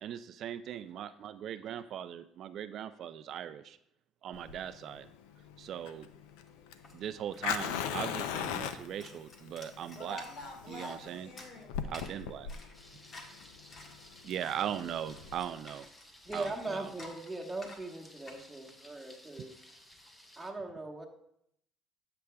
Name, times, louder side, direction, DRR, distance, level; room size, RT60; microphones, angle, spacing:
voice 1, 0.0-3.8 4.2-5.1 5.6-6.1 6.9-10.2 10.7-11.3 11.9-12.5 14.2-15.9 16.3-16.9, right 9 dB, 60° right, 12 dB, 0.4 m, -39 dB
Fire, 4.3-15.4, left 8 dB, 90° left, 0.5 m, -39 dB
sound 1, 6.3-20.1, left 2 dB, 40° left, 1.4 m, -54 dB
voice 2, 9.9-12.1, left 1 dB, 60° left, 1 dB, 2.2 m, -46 dB
Thunder, 12.7-20.5, left 1 dB, 15° left, 1.0 m, -57 dB
voice 3, 16.2-19.5 20.4-21.1, right 2 dB, 10° right, 0 dB, 1.3 m, -39 dB
9.7 x 7.6 x 2.3 m, 0.74 s
supercardioid pair, 95°, 0 cm